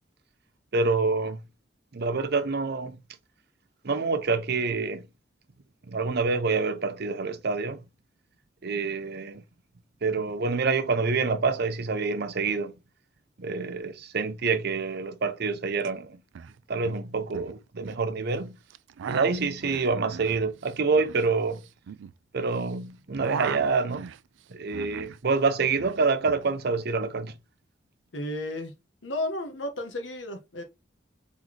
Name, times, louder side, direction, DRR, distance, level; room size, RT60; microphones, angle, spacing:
voice 1, 0.7-1.4 1.9-3.0 3.8-5.0 5.9-7.8 8.6-9.4 10.0-12.7 13.4-16.2 16.7-18.6 19.1-21.6 22.3-24.1 24.5-27.3, right 4 dB, 60° right, 0.7 m, -27 dB
sound 1, 15.8-15.9 16.1-16.5 16.8-18.0 18.7-22.7 22.9-25.2 25.5-26.4, right 7 dB, 80° right, 0.3 m, -38 dB
voice 2, 28.1-28.7 29.0-30.6, left 1 dB, 80° left, 1.3 m, -33 dB
4.0 x 4.0 x 3.0 m
head